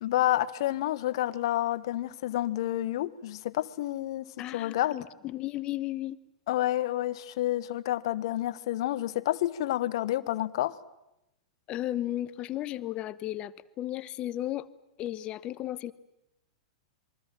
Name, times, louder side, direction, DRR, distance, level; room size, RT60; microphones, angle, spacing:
voice 1, 0.0-4.2 4.5-5.0 6.5-10.7, left 14 dB, 60° left, 15 dB, 1.2 m, -29 dB
voice 2, 4.4-6.2 11.7-14.7 15.0-15.9, left 14 dB, 35° left, 17 dB, 1.1 m, -34 dB
27.5 x 22.5 x 7.5 m, 0.88 s
hypercardioid pair, 105°, 3 cm